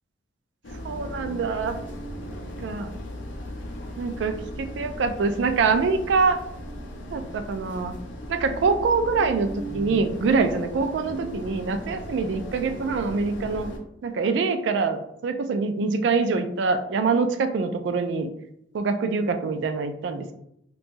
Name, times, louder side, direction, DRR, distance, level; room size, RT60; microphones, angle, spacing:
sound 1, 0.6-13.8, equal, 85° left, 0.5 m, -37 dB
voice 1, 0.8-1.8 2.6-2.9 4.0-6.4 7.1-8.0 8.3-13.7 14.0-18.3 18.7-20.3, right 4 dB, 80° right, 9 dB, 0.3 m, -25 dB
3.0 x 2.2 x 2.6 m, 0.78 s
head